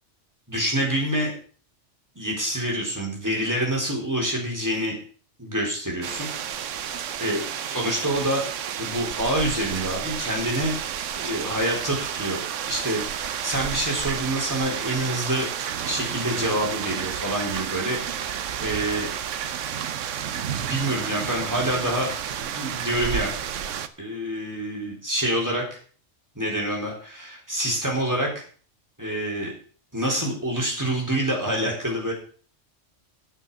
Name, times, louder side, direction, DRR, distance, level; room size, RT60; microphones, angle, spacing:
voice 1, 0.5-1.3 2.2-5.0 5.4-6.3 6.8-8.4 8.8-10.7 11.1-12.4 12.7-15.5 15.9-19.1 19.8-19.9 20.5-22.1 22.4-23.3 24.0-25.8 26.4-28.4 29.0-29.5 29.9-32.1, right 1 dB, 15° right, -2 dB, 3.9 m, -27 dB
sound 1, 6.0-23.9, right 9 dB, 90° right, 1.1 m, -31 dB
9.1 x 6.8 x 7.0 m, 0.43 s
omnidirectional pair, 1.2 m